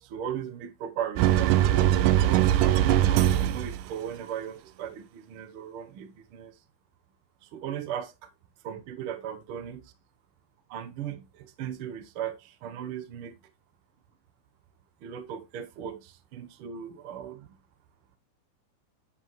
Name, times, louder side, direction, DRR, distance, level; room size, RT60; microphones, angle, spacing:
voice 1, 0.0-1.7 2.2-3.1 3.4-6.5 7.4-8.3 8.6-9.8 10.7-13.3 15.0-17.5, right 9 dB, 60° right, 1.5 m, -37 dB
sound 1, 1.2-3.9, right 12 dB, 90° right, 2.3 m, -21 dB
10.5 x 6.7 x 3.1 m
omnidirectional pair, 3.6 m